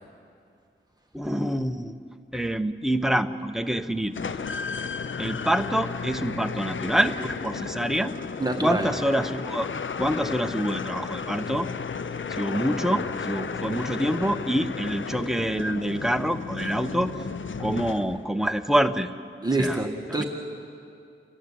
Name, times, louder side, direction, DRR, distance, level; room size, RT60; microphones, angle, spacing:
voice 1, 1.1-1.9 2.3-4.1 5.2-8.1 8.6-9.7 10.0-11.7 12.3-17.1 17.6-19.1 19.6-19.8 20.2-20.3, equal, ahead, 8 dB, 0.9 m, -26 dB
sound 1, 4.1-18.4, left 5 dB, 65° left, 0.7 m, -33 dB
voice 2, 8.4-8.9 19.4-20.2, right 2 dB, 20° right, 1 dB, 1.9 m, -26 dB
27.5 x 15.0 x 9.9 m, 2.4 s
wide cardioid pair, 100°, 21 cm